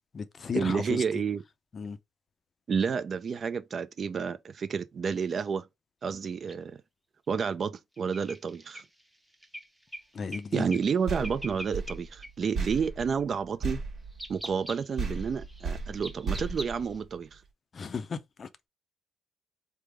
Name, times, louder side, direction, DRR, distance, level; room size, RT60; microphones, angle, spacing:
voice 1, 0.0-1.2 1.7-2.0 10.1-10.8 17.7-18.7, left 5 dB, 45° left, 0.4 m, -35 dB
voice 2, 0.5-1.4 2.7-5.7 6.0-6.8 7.3-8.8 10.5-13.8 14.3-17.4, right 6 dB, 50° right, 0.3 m, -30 dB
sound 1, 6.5-6.6 8.0-10.5 10.7-10.9 11.2-12.0 12.2-12.3 13.0-13.2 14.1-17.0, right 1 dB, 5° right, 0.7 m, -43 dB
sound 2, 11.1-14.7 15.0-17.4, right 4 dB, 65° right, 1.1 m, -36 dB
3.3 x 2.0 x 3.3 m
cardioid pair, 90°, 0 cm